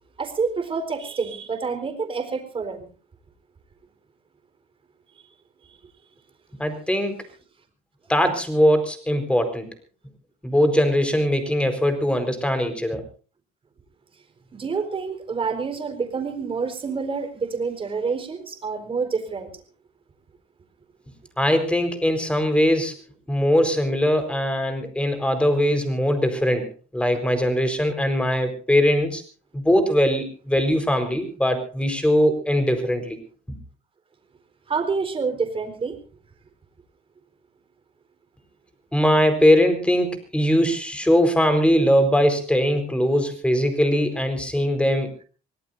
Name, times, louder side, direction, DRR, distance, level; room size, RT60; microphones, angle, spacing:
voice 1, 0.2-2.9 14.5-19.6 34.7-36.0, right 5 dB, 30° right, 5 dB, 4.3 m, -28 dB
voice 2, 6.6-7.2 8.1-9.7 10.4-13.0 21.4-23.0 23.3-26.7 26.9-29.2 29.5-33.2 38.9-45.2, equal, 5° left, 8 dB, 4.5 m, -21 dB
25.5 x 18.0 x 2.7 m, 0.36 s
cardioid pair, 110°, 17 cm